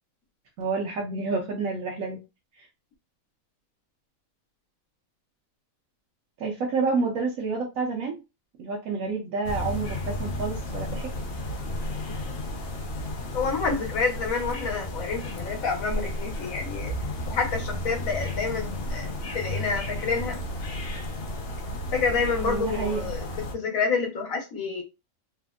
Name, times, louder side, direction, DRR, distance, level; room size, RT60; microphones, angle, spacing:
voice 1, 0.6-2.2 2.6-2.7 6.4-8.2 8.6-11.1 22.4-23.1, right 4 dB, 85° right, 1.1 m, -29 dB
sound 1, 9.4-23.5, left 1 dB, 55° left, 0.8 m, -33 dB
voice 2, 13.3-16.9 17.3-19.1 19.3-20.4 21.9-24.8, left 5 dB, 80° left, 1.3 m, -28 dB
3.4 x 2.1 x 2.3 m
omnidirectional pair, 1.4 m